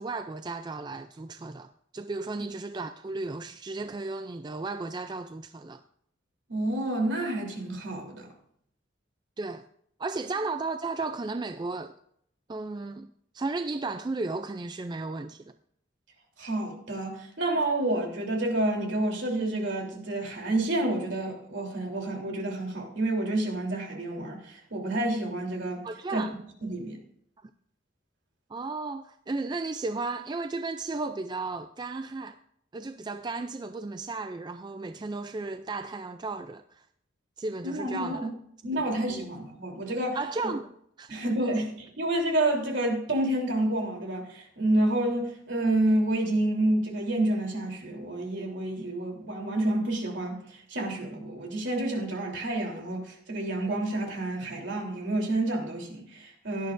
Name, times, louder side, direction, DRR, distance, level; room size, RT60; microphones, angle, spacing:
voice 1, 0.0-5.8 9.4-9.6 10.0-11.9 12.5-15.5 25.8-26.3 28.5-32.4 32.7-36.9 37.4-38.3 38.7-38.8 39.1-39.2 40.1-40.7 41.0-41.2, right 3 dB, 20° right, 0.3 m, -34 dB
voice 2, 6.5-8.3 16.4-25.8 26.1-26.2 26.6-27.0 37.6-38.3 38.6-40.2 40.4-40.5 41.1-56.7, right 1 dB, 60° right, 3.3 m, -29 dB
17.0 x 11.5 x 2.6 m
head